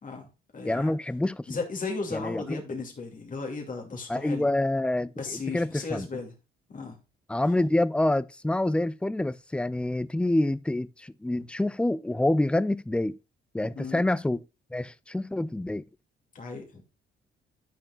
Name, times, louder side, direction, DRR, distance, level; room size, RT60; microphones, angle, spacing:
voice 1, 0.0-0.9 1.5-4.5 5.1-6.3 6.7-7.0 11.3-11.5 13.7-14.0 16.3-16.8, left 4 dB, 40° left, 2.5 m, -36 dB
voice 2, 0.7-1.5 2.1-2.6 4.1-6.1 7.3-13.2 13.5-14.4 14.7-15.8, left 1 dB, 5° left, 0.4 m, -27 dB
10.5 x 6.0 x 2.4 m
cardioid pair, 90°, 20 cm